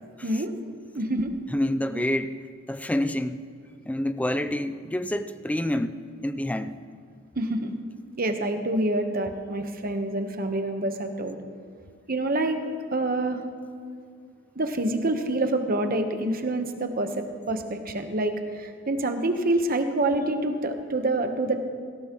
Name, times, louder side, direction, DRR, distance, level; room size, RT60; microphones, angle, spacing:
voice 1, 0.2-0.5 0.9-1.3 7.4-7.7 8.2-11.4 12.1-12.6 12.9-13.4 14.5-21.6, right 2 dB, 45° right, 6 dB, 1.1 m, -27 dB
voice 2, 1.5-2.4 2.7-3.4 3.9-6.0 6.2-6.7, left 1 dB, 5° left, 11 dB, 0.4 m, -27 dB
17.5 x 17.5 x 3.1 m, 2.2 s
head